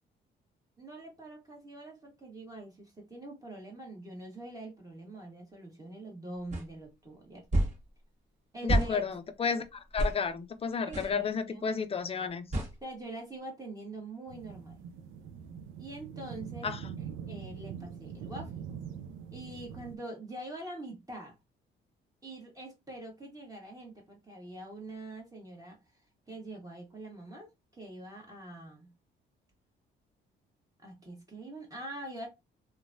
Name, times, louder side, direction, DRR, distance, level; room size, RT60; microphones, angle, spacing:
voice 1, 0.8-7.4 8.5-9.0 10.9-11.6 12.8-14.8 15.8-16.7 17.0-18.6 19.3-21.3 22.2-25.8 26.3-28.9 30.8-32.3, right 2 dB, 15° right, 1.3 m, -44 dB
sound 1, 6.5-6.7 7.5-7.8 8.7-8.9 10.0-10.2 10.9-11.1 12.5-12.7, right 1 dB, 35° right, 1.3 m, -28 dB
voice 2, 8.6-12.5 16.6-16.8, left 5 dB, 30° left, 0.5 m, -32 dB
sound 2, 14.3-20.0, right 7 dB, 85° right, 0.4 m, -43 dB
3.0 x 2.3 x 2.6 m
cardioid pair, 90°, 20 cm